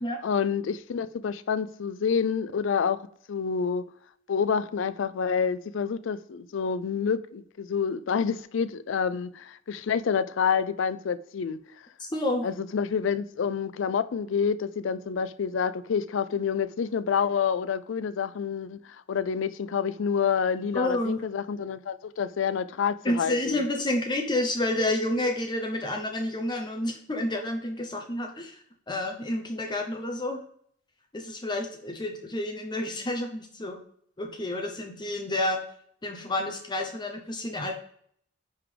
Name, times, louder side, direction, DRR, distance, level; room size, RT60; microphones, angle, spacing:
voice 1, 0.2-3.0 3.3-3.8 4.3-11.6 12.4-23.6, left 6 dB, 65° left, 0.4 m, -28 dB
voice 2, 12.0-12.5 20.7-21.2 23.0-28.6 28.9-30.4 31.1-33.8 34.2-35.6 36.0-37.7, left 1 dB, 25° left, 0.7 m, -29 dB
9.5 x 3.6 x 3.3 m
head